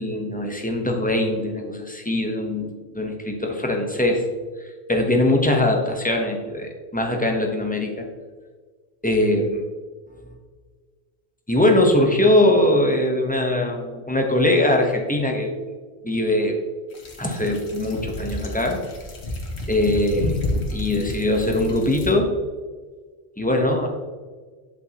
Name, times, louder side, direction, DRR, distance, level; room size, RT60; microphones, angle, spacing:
voice 1, 0.0-4.2 4.6-8.1 9.0-9.6 11.5-15.5 16.0-16.6 17.2-18.8 19.7-20.4 20.7-22.4 23.4-23.9, left 1 dB, 10° left, 2 dB, 1.0 m, -21 dB
sound 1, 16.9-22.1, left 2 dB, 80° left, 1.7 m, -30 dB
8.5 x 7.7 x 3.0 m, 1.5 s
omnidirectional pair, 1.1 m